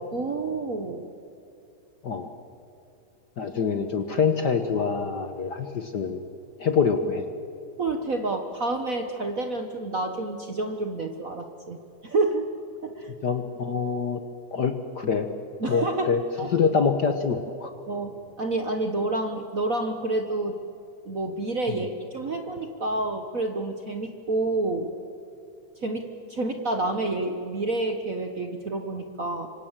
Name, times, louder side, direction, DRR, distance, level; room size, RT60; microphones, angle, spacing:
voice 1, 0.1-1.1 7.8-12.5 12.8-13.1 15.6-16.5 17.9-20.6 21.0-24.9 25.8-29.5, right 2 dB, 60° right, 5 dB, 0.8 m, -29 dB
voice 2, 3.4-6.2 6.6-7.2 13.2-14.2 14.5-15.3 15.7-16.2 16.5-17.7 21.7-21.8, left 5 dB, 65° left, 7 dB, 1.0 m, -25 dB
26.5 x 25.0 x 7.4 m, 2.7 s
omnidirectional pair, 3.4 m